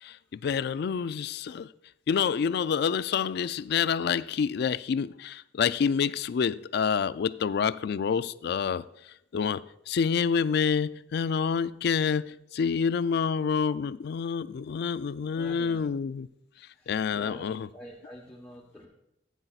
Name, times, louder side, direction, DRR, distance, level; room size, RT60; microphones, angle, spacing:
voice 1, 0.0-1.7 2.1-8.8 9.3-9.6 9.9-16.3 16.9-17.7, left 6 dB, 60° left, 0.3 m, -28 dB
voice 2, 15.3-15.8 16.7-18.9, equal, 5° left, 1.1 m, -47 dB
15.0 x 9.1 x 2.4 m
head